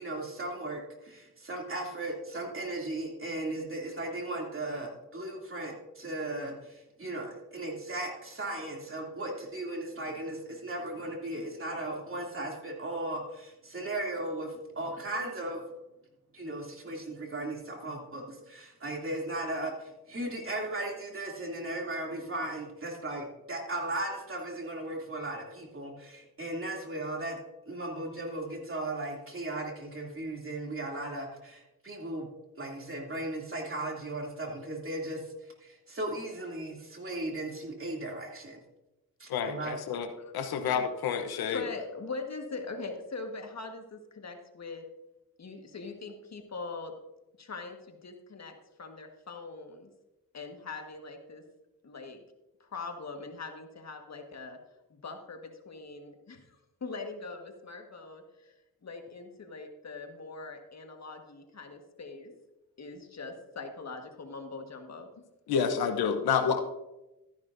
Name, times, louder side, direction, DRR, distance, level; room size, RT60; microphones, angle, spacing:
voice 1, 0.0-15.6 16.3-27.4 27.7-32.3 32.6-35.2 35.6-38.6 39.2-39.8, right 2 dB, 35° right, 0 dB, 2.9 m, -36 dB
voice 2, 39.3-40.1 40.3-41.6 65.5-66.6, left 7 dB, 85° left, 7 dB, 1.0 m, -29 dB
voice 3, 41.5-44.8 45.4-46.9 47.4-49.9 50.3-51.4 51.8-52.2 52.6-54.6 54.9-58.5 58.8-62.3 62.8-65.1, left 3 dB, 45° left, 4 dB, 1.7 m, -42 dB
13.5 x 10.5 x 2.7 m, 0.97 s
cardioid pair, 70°, 36 cm